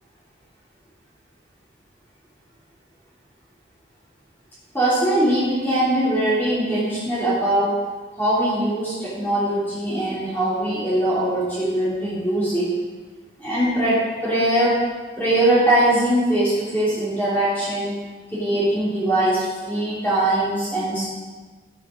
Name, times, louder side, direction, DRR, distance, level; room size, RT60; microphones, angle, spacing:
voice 1, 4.7-7.8 8.2-12.7 13.4-14.8 15.2-17.9 18.3-21.0, right 1 dB, 10° left, -10 dB, 3.3 m, -21 dB
12.5 x 10.5 x 3.9 m, 1.4 s
head